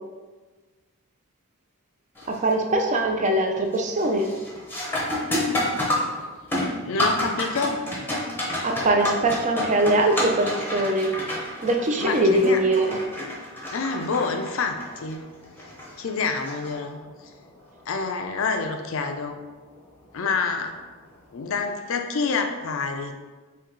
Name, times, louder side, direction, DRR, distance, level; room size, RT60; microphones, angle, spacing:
sound 1, 2.2-2.5 3.0-3.4 3.7-17.2 19.8-19.9 20.7-20.9, left 1 dB, 10° left, 0.7 m, -30 dB
voice 1, 2.3-4.3 8.6-11.1 11.6-13.0, right 1 dB, 35° right, 2 dB, 0.4 m, -22 dB
voice 2, 6.6-7.8 12.0-12.6 13.7-15.2 16.0-17.0 17.9-19.4 20.1-20.8 21.3-23.1, left 4 dB, 60° left, 5 dB, 0.4 m, -27 dB
4.4 x 2.8 x 3.9 m, 1.3 s
head